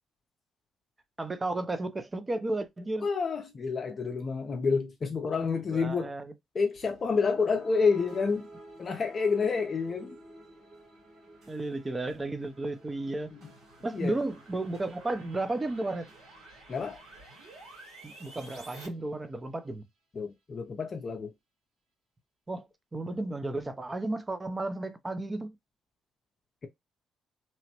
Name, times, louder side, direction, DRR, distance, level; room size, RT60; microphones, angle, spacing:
voice 1, 1.2-3.1 5.7-6.3 11.5-13.3 13.8-16.1 18.0-19.8 22.5-22.7 22.9-25.5, right 2 dB, 25° right, 0.5 m, -33 dB
voice 2, 3.0-6.1 6.5-8.5 8.8-10.2 13.3-13.5 13.9-14.2 16.7-17.0 20.1-21.3, left 5 dB, 40° left, 0.5 m, -29 dB
sound 1, 6.7-19.1, right 1 dB, 65° right, 1.4 m, -53 dB
sound 2, 12.4-18.9, right 2 dB, 80° right, 1.8 m, -53 dB
3.0 x 2.1 x 2.9 m
cardioid pair, 90°, 0 cm